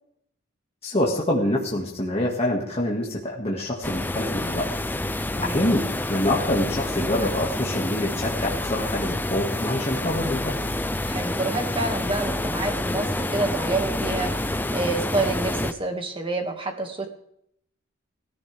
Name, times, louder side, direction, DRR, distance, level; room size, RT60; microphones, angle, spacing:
voice 1, 0.8-4.7 5.4-10.5, left 1 dB, 30° left, -3 dB, 2.1 m, -26 dB
sound 1, 3.8-15.7, left 1 dB, 10° left, 0.5 m, -28 dB
voice 2, 11.1-17.1, right 3 dB, 25° right, 3 dB, 2.1 m, -28 dB
18.5 x 14.5 x 3.6 m, 0.72 s
head